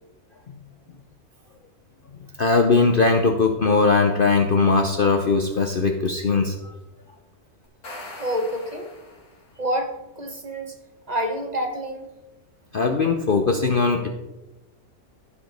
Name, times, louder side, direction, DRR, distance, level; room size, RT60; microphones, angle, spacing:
voice 1, 2.4-6.7 12.7-14.1, left 4 dB, 50° left, 4 dB, 0.7 m, -20 dB
sound 1, 7.6-9.6, left 2 dB, 90° left, 2.8 m, -41 dB
voice 2, 8.2-8.9 9.6-10.7 11.1-12.1, equal, 30° right, 3 dB, 1.1 m, -28 dB
14.5 x 5.0 x 4.0 m, 1.0 s
omnidirectional pair, 1.6 m